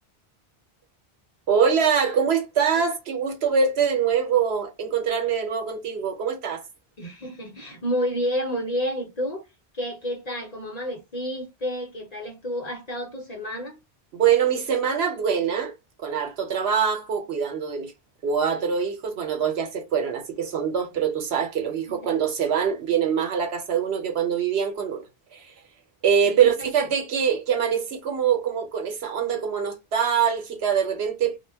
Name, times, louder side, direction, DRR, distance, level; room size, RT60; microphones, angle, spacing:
voice 1, 1.5-6.6 14.1-15.7 16.0-17.9 18.2-25.0 25.3-25.5 26.0-31.4, right 7 dB, 90° right, 1.0 m, -24 dB
voice 2, 7.0-9.4 9.7-13.8 21.9-22.1 26.2-26.9, equal, 45° left, 0.7 m, -30 dB
2.2 x 2.2 x 3.3 m
omnidirectional pair, 1.1 m